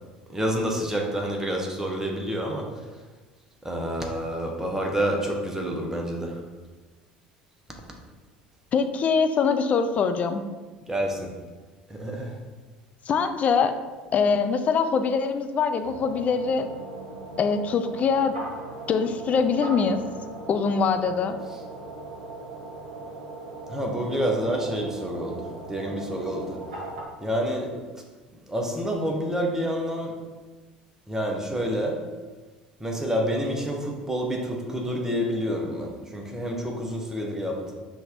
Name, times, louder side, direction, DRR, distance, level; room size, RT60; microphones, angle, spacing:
voice 1, 0.3-3.0 3.6-6.5 10.9-11.4 11.9-12.4 21.4-21.6 23.7-26.6 27.2-28.0 28.3-30.2 31.1-32.1 32.8-37.7, equal, 10° right, 1 dB, 0.9 m, -28 dB
voice 2, 8.7-10.5 13.1-13.7 14.1-16.6 17.4-18.4 18.9-20.0 20.5-21.4, left 5 dB, 35° left, 8 dB, 0.4 m, -23 dB
sound 1, 15.8-27.0, right 2 dB, 70° right, 1.1 m, -39 dB
5.7 x 2.7 x 3.5 m, 1.3 s
figure-of-eight pair, 65°, 4 cm